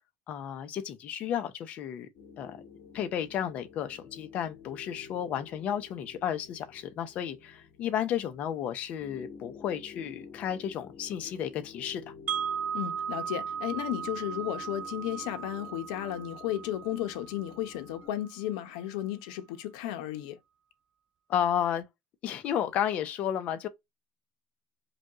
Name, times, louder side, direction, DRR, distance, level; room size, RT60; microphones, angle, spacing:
voice 1, 0.3-2.1 2.4-2.6 2.9-12.0 21.3-21.8 22.2-23.7, left 9 dB, 40° left, 0.7 m, -32 dB
sound 1, 2.1-18.1, left 5 dB, 60° left, 1.5 m, -50 dB
Wind chime, 12.3-18.3, right 8 dB, 30° right, 0.3 m, -37 dB
voice 2, 12.7-20.4, left 12 dB, 80° left, 0.8 m, -34 dB
5.1 x 2.3 x 2.9 m
cardioid pair, 155°, 4 cm